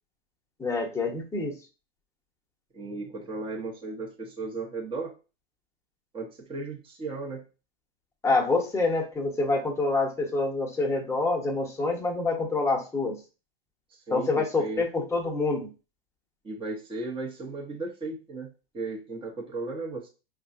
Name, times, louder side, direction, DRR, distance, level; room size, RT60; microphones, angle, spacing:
voice 1, 0.6-1.6 8.2-13.2 14.1-15.7, left 3 dB, 10° left, 0 dB, 1.0 m, -26 dB
voice 2, 2.7-5.1 6.1-7.4 14.1-14.8 16.4-18.5 18.7-20.1, right 3 dB, 15° right, -1 dB, 1.0 m, -35 dB
5.3 x 2.4 x 2.6 m, 0.32 s
hypercardioid pair, 110°, 30 cm